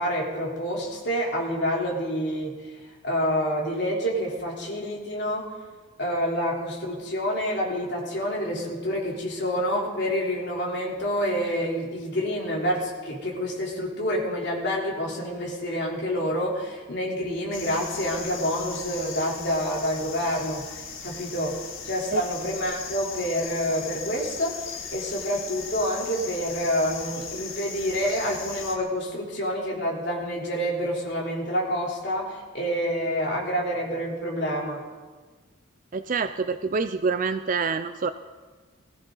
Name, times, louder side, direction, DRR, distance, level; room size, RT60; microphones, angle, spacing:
voice 1, 0.0-2.7 3.0-5.5 6.0-20.6 21.0-21.5 21.8-34.8, equal, 55° left, -3 dB, 3.6 m, -28 dB
sound 1, 17.5-28.8, left 6 dB, 85° left, 1.9 m, -38 dB
voice 2, 35.9-38.1, right 4 dB, 40° right, 10 dB, 0.4 m, -26 dB
21.0 x 14.5 x 3.9 m, 1.4 s
head